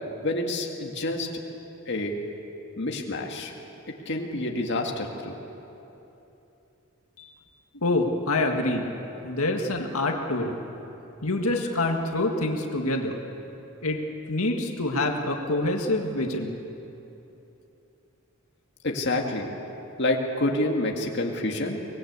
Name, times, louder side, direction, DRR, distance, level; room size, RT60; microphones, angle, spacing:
voice 1, 0.2-1.3 1.9-2.2 2.8-3.5 4.1-5.4 18.8-19.5 20.0-21.8, left 2 dB, 55° left, 1 dB, 2.0 m, -28 dB
voice 2, 7.7-8.9 9.2-10.5 11.2-13.2 13.8-14.0 14.3-16.6, left 2 dB, 90° left, 2 dB, 1.9 m, -26 dB
24.5 x 19.5 x 8.2 m, 3.0 s
head